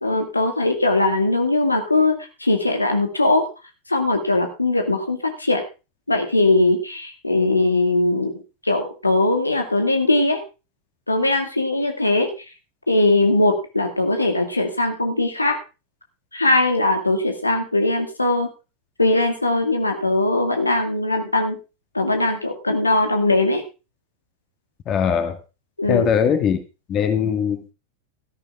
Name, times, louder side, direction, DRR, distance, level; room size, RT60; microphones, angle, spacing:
voice 1, 0.0-2.1 2.4-3.5 3.9-5.6 6.1-10.4 11.1-12.5 12.9-15.6 16.3-18.5 19.0-21.6 21.9-23.6 25.8-26.1, left 2 dB, 80° left, 5 dB, 2.1 m, -20 dB
voice 2, 24.9-25.4 25.9-26.6 26.9-27.7, left 7 dB, 30° left, 7 dB, 2.1 m, -20 dB
13.5 x 11.0 x 3.7 m, 0.30 s
figure-of-eight pair, 90°, 0 cm